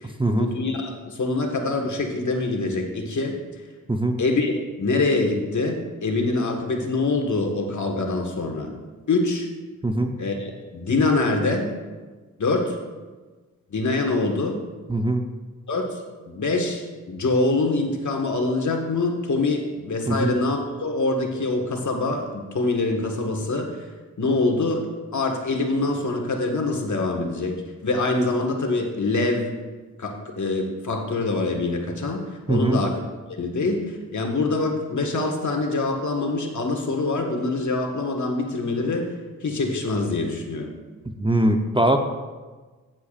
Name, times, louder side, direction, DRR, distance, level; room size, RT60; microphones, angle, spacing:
voice 1, 0.0-3.4 4.2-4.5 4.8-8.7 9.1-9.5 10.2-11.7 12.4-12.8 13.7-14.6 15.7-16.0 16.3-23.9 24.2-24.9 25.1-29.5 30.0-33.0 33.4-40.7, left 3 dB, 55° left, 2 dB, 1.8 m, -25 dB
voice 2, 9.8-10.1 14.9-15.2 20.1-20.3 32.5-32.8 41.0-42.0, right 1 dB, 15° right, 5 dB, 0.9 m, -21 dB
16.5 x 7.4 x 2.6 m, 1.3 s
supercardioid pair, 40°, 36 cm